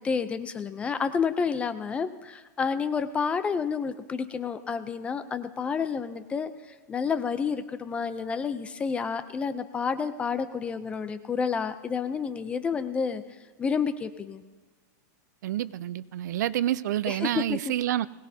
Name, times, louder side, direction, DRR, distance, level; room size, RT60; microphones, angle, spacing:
voice 1, 0.0-13.2 13.6-14.4 17.1-17.6, left 6 dB, 10° left, 11 dB, 0.5 m, -30 dB
voice 2, 15.4-18.1, right 12 dB, 65° right, 17 dB, 0.5 m, -28 dB
21.0 x 18.0 x 2.8 m, 1.3 s
supercardioid pair, 165°, 10 cm